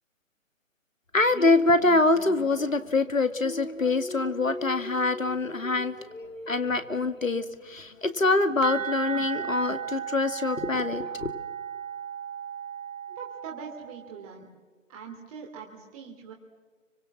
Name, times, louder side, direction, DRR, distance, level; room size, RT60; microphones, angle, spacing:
voice 1, 1.1-11.3, left 3 dB, 80° left, 10 dB, 2.2 m, -25 dB
sound 1, 8.6-14.2, right 8 dB, 85° right, 2.3 m, -35 dB
voice 2, 13.2-14.5 14.9-16.3, right 6 dB, 25° right, 0 dB, 2.9 m, -42 dB
28.5 x 25.0 x 7.5 m, 1.4 s
figure-of-eight pair, 140°, 39 cm